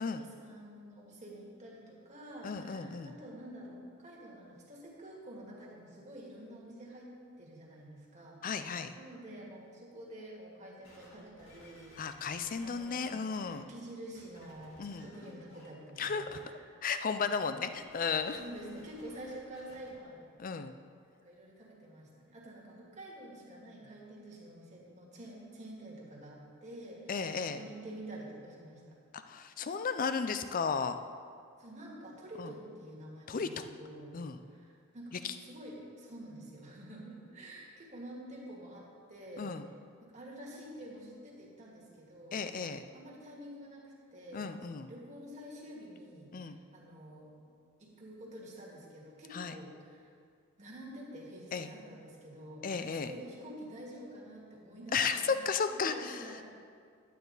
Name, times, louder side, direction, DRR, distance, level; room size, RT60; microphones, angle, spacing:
voice 1, 0.0-7.1 7.4-12.0 12.6-16.3 16.7-16.8 18.1-20.3 21.2-29.0 31.6-34.2 34.5-39.5 40.0-42.4 42.9-47.4 47.8-50.1 50.6-55.4 55.7-56.4, right 1 dB, 30° right, -3 dB, 1.9 m, -48 dB
voice 2, 2.4-3.1 8.4-8.9 12.0-13.6 14.8-15.1 16.0-16.4 16.8-18.4 20.4-20.7 27.1-27.6 29.1-31.0 32.4-32.5 33.3-33.7 34.1-34.4 35.2-35.3 39.4-39.7 42.3-42.9 44.3-44.9 46.3-46.6 49.3-49.5 51.5-51.7 52.6-53.1 54.9-56.2, left 5 dB, 40° left, 10 dB, 0.4 m, -34 dB
sound 1, 10.8-13.6 14.1-15.7 15.9-16.4 17.6-19.9 20.6-20.7, left 1 dB, 60° left, 2.9 m, -58 dB
11.0 x 9.2 x 4.0 m, 2.2 s
head